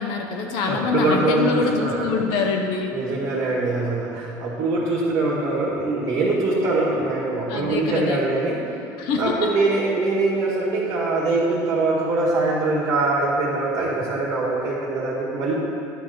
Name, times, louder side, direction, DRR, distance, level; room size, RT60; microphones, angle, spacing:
voice 1, 0.0-3.0 7.5-8.2 9.0-9.5, left 4 dB, 70° left, 3 dB, 1.1 m, -25 dB
voice 2, 0.6-2.4 2.9-8.8 9.2-15.5, right 2 dB, 45° right, -5 dB, 1.8 m, -23 dB
11.0 x 3.9 x 6.8 m, 2.7 s
cardioid pair, 130°, 8 cm